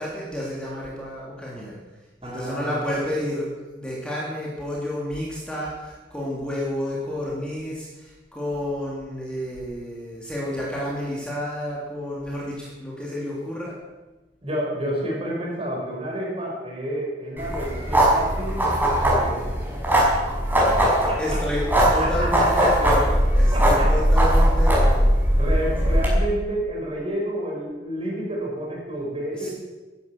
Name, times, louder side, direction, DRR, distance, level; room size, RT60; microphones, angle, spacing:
voice 1, 0.0-1.8 2.2-13.8 21.2-21.6 21.9-25.2 29.4-29.5, equal, 5° left, -5 dB, 3.2 m, -30 dB
voice 2, 2.2-2.9 14.4-19.6 20.6-21.4 21.8-22.9 23.5-23.9 25.3-29.5, right 1 dB, 35° right, -2 dB, 5.6 m, -30 dB
sound 1, 17.4-26.1, equal, 10° right, 5.7 m, -20 dB
15.0 x 11.0 x 7.3 m, 1.2 s
head